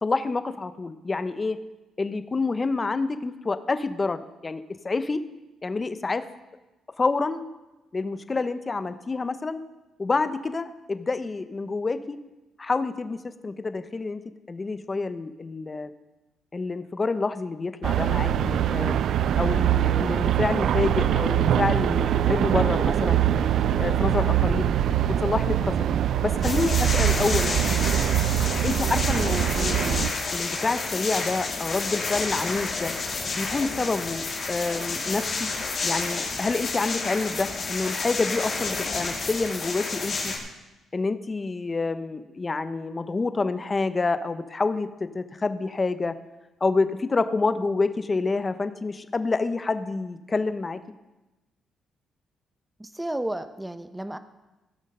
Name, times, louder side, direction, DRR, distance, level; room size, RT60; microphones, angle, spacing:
voice 1, 0.0-1.6 2.0-5.2 5.6-6.3 7.0-7.5 7.9-9.6 10.0-12.2 12.6-14.2 14.5-15.9 16.5-19.0 19.4-23.2 23.8-24.7 25.1-25.9 26.2-27.5 28.6-32.9 33.3-35.5 35.8-40.3 40.9-46.1 46.6-50.8, left 3 dB, 30° left, 11 dB, 0.7 m, -28 dB
sound 1, 17.8-30.1, right 10 dB, 70° right, 0.3 m, -23 dB
sound 2, 26.4-40.4, left 3 dB, 45° left, 2.6 m, -30 dB
voice 2, 52.8-54.2, right 1 dB, 10° right, 11 dB, 0.6 m, -32 dB
16.5 x 6.2 x 5.5 m, 1.1 s
cardioid pair, 90°, 0 cm